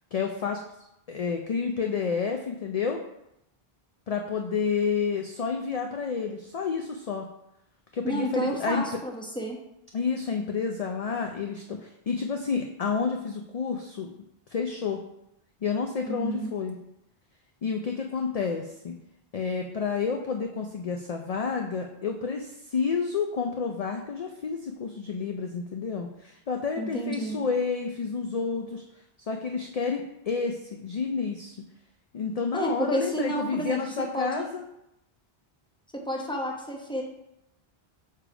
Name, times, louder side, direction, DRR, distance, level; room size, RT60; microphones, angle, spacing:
voice 1, 0.1-0.6 1.1-3.0 4.1-7.3 7.9-9.0 9.9-14.1 14.5-15.0 15.6-16.8 17.6-19.0 19.3-28.8 29.3-31.6 32.1-34.6, left 5 dB, 50° left, 3 dB, 0.5 m, -30 dB
voice 2, 8.0-9.6 16.0-16.5 26.8-27.4 32.5-34.5 35.9-37.0, right 1 dB, 5° left, -1 dB, 1.0 m, -31 dB
6.7 x 3.4 x 4.9 m, 0.82 s
omnidirectional pair, 1.0 m